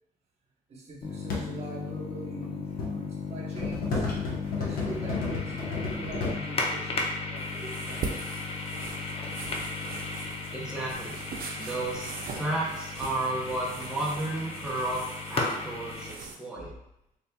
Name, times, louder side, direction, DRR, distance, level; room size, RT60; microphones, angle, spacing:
voice 1, 0.7-4.0 4.5-7.0 7.3-8.3 16.5-16.7, right 2 dB, 45° right, -2 dB, 1.2 m, -43 dB
sound 1, 1.0-16.1, left 3 dB, 40° left, 0.7 m, -35 dB
sound 2, 1.3-1.5 2.4-3.0 3.6-6.4 7.8-7.9 8.6-9.3 10.3-10.4 10.7-10.8 11.1-11.2 11.9-13.5 13.8-13.9 14.2-14.4 14.7-14.9, left 3 dB, 75° left, 1.0 m, -33 dB
sound 3, 7.4-16.4, right 5 dB, 70° right, 0.6 m, -42 dB
voice 2, 10.5-11.2 11.5-12.1 12.3-15.0 15.3-16.7, right 2 dB, 5° right, -5 dB, 0.8 m, -32 dB
4.1 x 3.4 x 2.3 m, 0.82 s
cardioid pair, 105°, 16 cm